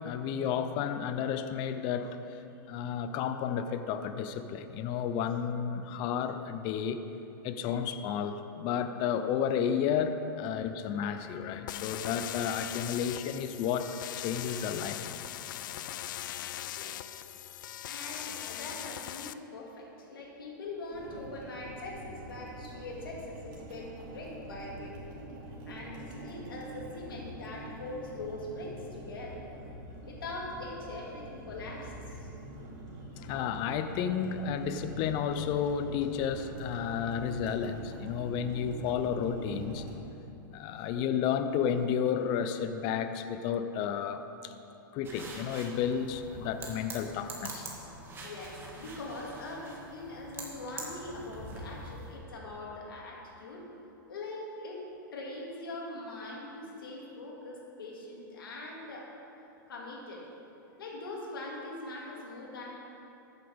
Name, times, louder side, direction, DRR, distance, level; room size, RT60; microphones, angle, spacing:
voice 1, 0.0-7.0 7.4-13.9 14.2-15.1 33.2-39.8 40.5-44.5 44.9-47.7, left 8 dB, 40° left, 9 dB, 0.7 m, -32 dB
sound 1, 11.7-19.3, left 13 dB, 65° left, 0.4 m, -40 dB
voice 2, 16.7-17.0 17.8-25.0 25.7-29.4 30.1-32.3 48.2-53.6 54.1-54.9 55.1-59.2 59.7-60.3 60.8-62.8, left 2 dB, 90° left, -2 dB, 2.4 m, -42 dB
sound 2, 20.9-39.9, right 1 dB, 45° right, 2.6 m, -45 dB
sound 3, 45.0-52.2, right 2 dB, 20° right, 2.0 m, -45 dB
14.0 x 9.2 x 3.6 m, 2.8 s
hypercardioid pair, 125°, 11 cm